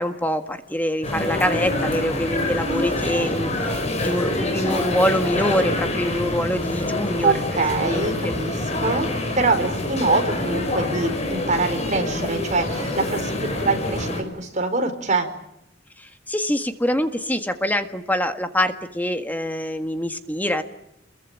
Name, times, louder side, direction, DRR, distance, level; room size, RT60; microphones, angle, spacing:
voice 1, 0.0-7.3 7.8-8.4 16.0-20.6, equal, 10° left, 7 dB, 1.7 m, -25 dB
sound 1, 1.0-14.2, left 1 dB, 35° left, 5.9 m, -26 dB
voice 2, 7.2-9.1 9.3-15.3, right 3 dB, 40° right, 5 dB, 4.6 m, -24 dB
28.5 x 22.5 x 8.9 m, 0.80 s
head